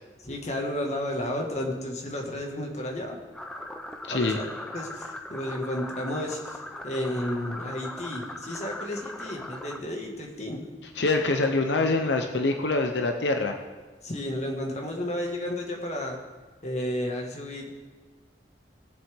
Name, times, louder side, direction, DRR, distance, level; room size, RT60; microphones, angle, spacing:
voice 1, 0.2-3.2 4.1-10.7 14.0-16.2 16.6-17.7, left 1 dB, 40° left, 1 dB, 1.7 m, -32 dB
sound 1, 3.3-9.8, left 1 dB, 5° left, 0.7 m, -39 dB
voice 2, 4.1-4.4 11.0-13.6, left 3 dB, 90° left, 4 dB, 0.9 m, -25 dB
19.5 x 7.3 x 3.6 m, 1.4 s
head